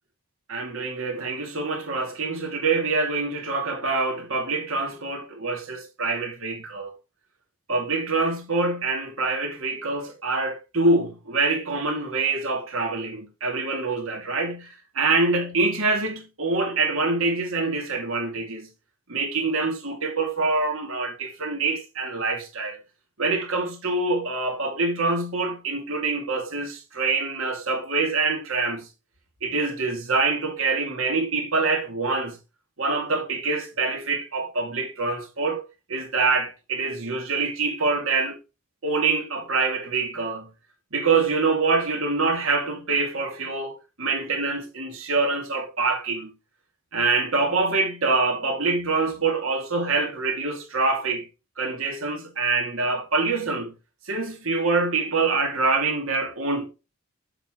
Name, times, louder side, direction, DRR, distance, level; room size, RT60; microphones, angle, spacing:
voice 1, 0.5-6.9 7.7-18.7 19.1-22.8 23.2-28.9 29.4-32.4 32.8-35.6 35.9-38.4 38.8-40.5 40.9-46.3 46.9-51.3 51.6-53.7 54.1-56.7, right 3 dB, 75° right, 2.7 m, -25 dB
7.8 x 6.5 x 3.9 m
head